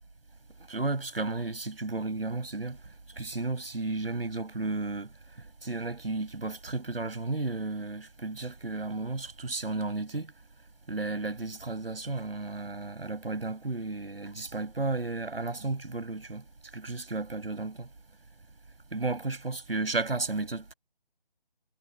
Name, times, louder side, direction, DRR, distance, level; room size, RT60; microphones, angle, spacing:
voice 1, 0.7-2.8 3.2-5.1 5.6-10.3 10.9-16.4 16.7-17.9 18.9-20.7, right 3 dB, 80° right, 7.4 m, -33 dB
figure-of-eight pair, 175°, 29 cm